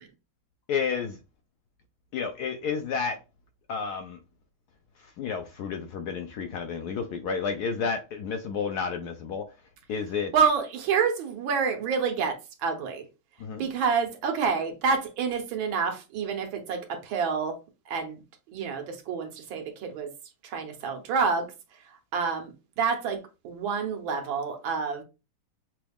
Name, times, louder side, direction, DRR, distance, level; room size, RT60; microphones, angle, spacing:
voice 1, 0.7-1.2 2.1-3.2 3.7-4.2 5.2-9.5 9.9-10.3 13.4-13.7, left 6 dB, 70° left, 1.0 m, -31 dB
voice 2, 10.3-13.1 13.6-17.6 17.9-18.2 18.5-20.1 20.4-21.5 22.1-25.0, right 5 dB, 80° right, 1.7 m, -28 dB
6.0 x 2.3 x 3.4 m
omnidirectional pair, 2.1 m